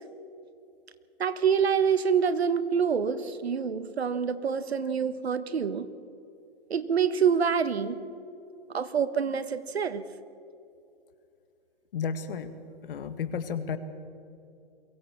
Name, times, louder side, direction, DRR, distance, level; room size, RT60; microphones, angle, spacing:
voice 1, 1.2-5.9 6.7-8.0 8.7-10.0, right 7 dB, 85° right, 13 dB, 1.4 m, -26 dB
voice 2, 11.9-12.5 12.8-13.8, left 6 dB, 60° left, 11 dB, 1.8 m, -32 dB
22.5 x 17.5 x 7.2 m, 2.6 s
hypercardioid pair, 140°, 31 cm